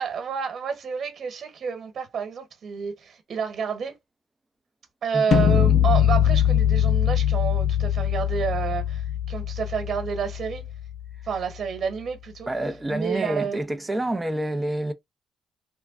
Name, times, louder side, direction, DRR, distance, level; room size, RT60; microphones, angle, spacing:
voice 1, 0.0-3.9 5.0-9.0 9.3-10.6 11.3-12.5 12.9-13.6, right 6 dB, 55° right, 1.3 m, -29 dB
sound 1, 5.3-11.3, left 10 dB, 60° left, 0.4 m, -22 dB
voice 2, 12.5-14.9, right 1 dB, 15° right, 0.6 m, -27 dB
3.4 x 2.1 x 2.3 m
cardioid pair, 90°, 0 cm